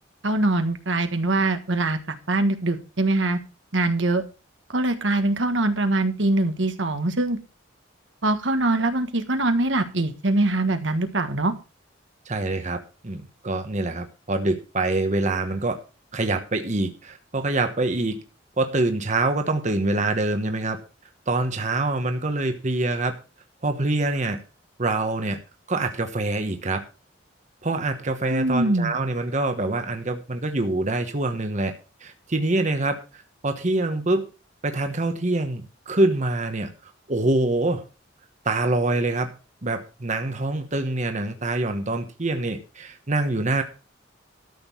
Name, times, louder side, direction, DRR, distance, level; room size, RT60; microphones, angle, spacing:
voice 1, 0.2-3.4 3.7-4.2 4.7-7.4 8.2-11.5 28.3-28.9, right 2 dB, 70° right, 8 dB, 1.5 m, -23 dB
voice 2, 12.2-15.8 16.1-18.2 18.6-20.8 21.3-23.1 23.6-24.4 24.8-25.4 25.7-26.8 27.6-31.7 32.0-34.3 34.6-36.7 37.1-37.8 38.4-39.3 39.6-43.6, right 2 dB, 40° right, 6 dB, 1.2 m, -25 dB
13.0 x 6.9 x 5.6 m, 0.33 s
head